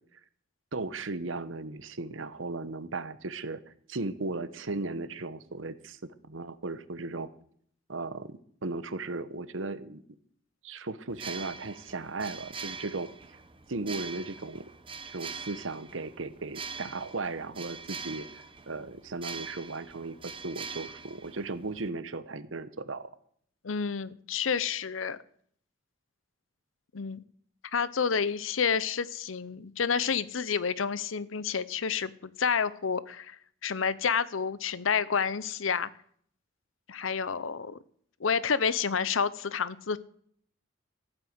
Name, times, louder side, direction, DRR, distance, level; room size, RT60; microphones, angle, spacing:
voice 1, 0.7-3.6 3.9-7.3 7.9-10.0 10.6-13.1 13.7-14.7 15.1-23.1, right 3 dB, 80° right, 14 dB, 1.0 m, -36 dB
sound 1, 11.1-21.9, right 5 dB, 25° right, 1.0 m, -43 dB
voice 2, 23.6-25.2 26.9-27.2 27.7-33.4 33.6-35.9 36.9-37.8 38.2-40.0, left 6 dB, 85° left, 18 dB, 0.7 m, -29 dB
14.5 x 8.9 x 8.0 m, 0.63 s
head